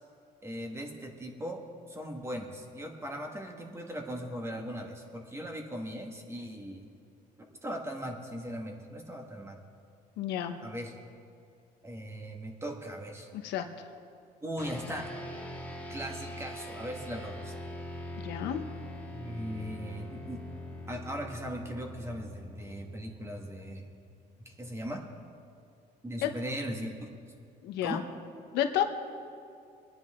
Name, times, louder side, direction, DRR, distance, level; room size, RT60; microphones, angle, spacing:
voice 1, 0.4-6.9 7.4-9.6 10.6-10.9 11.8-13.3 14.4-15.1 15.9-17.5 19.1-20.4 20.9-23.9 24.4-25.0 26.0-27.1 27.8-28.0, equal, 15° right, 2 dB, 1.9 m, -39 dB
voice 2, 10.2-10.6 13.3-13.7 18.2-18.6 26.2-26.3 27.6-28.0 28.5-28.8, left 11 dB, 85° left, 6 dB, 1.1 m, -30 dB
sound 1, 14.6-24.2, left 1 dB, 10° left, 2.1 m, -43 dB
22.5 x 9.9 x 3.8 m, 2.4 s
cardioid pair, 110°, 17 cm